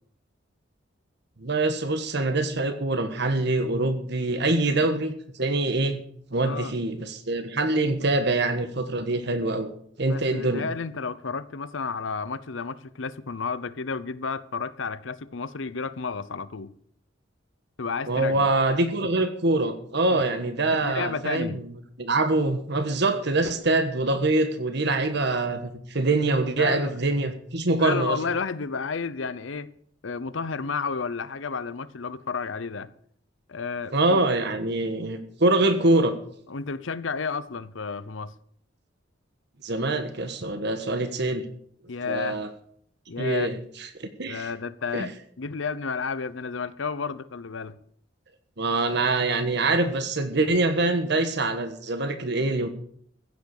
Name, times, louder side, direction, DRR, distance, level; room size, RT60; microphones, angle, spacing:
voice 1, 1.4-6.0 6.3-9.7 10.0-10.6 18.1-21.6 22.0-28.2 33.9-36.1 39.6-41.4 42.1-42.5 43.2-43.6 44.0-44.5 44.9-45.1 48.6-52.7, right 2 dB, 60° right, 1.4 m, -24 dB
voice 2, 6.4-6.7 10.0-16.7 17.8-18.5 20.1-20.2 20.8-21.6 26.6-27.0 27.8-29.7 30.0-32.9 33.5-34.2 36.5-38.3 41.9-42.4 43.1-43.6 44.3-45.1 45.4-47.8, left 5 dB, 75° left, 0.7 m, -32 dB
15.5 x 8.4 x 6.7 m
head